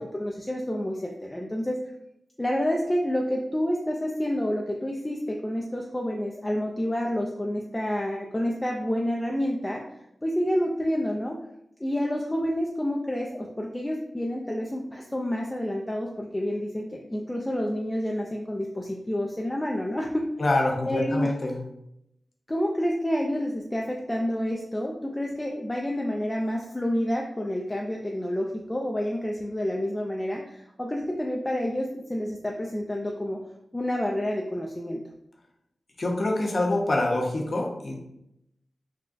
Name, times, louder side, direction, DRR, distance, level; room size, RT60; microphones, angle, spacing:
voice 1, 0.0-1.8 2.4-9.8 10.2-11.4 11.8-20.3 20.9-21.3 22.5-33.4 33.7-35.0, equal, 15° left, 0 dB, 0.3 m, -29 dB
voice 2, 20.4-21.6 36.0-38.0, left 2 dB, 50° left, 1 dB, 0.6 m, -25 dB
3.7 x 2.2 x 2.5 m, 0.80 s
cardioid pair, 65°, 0 cm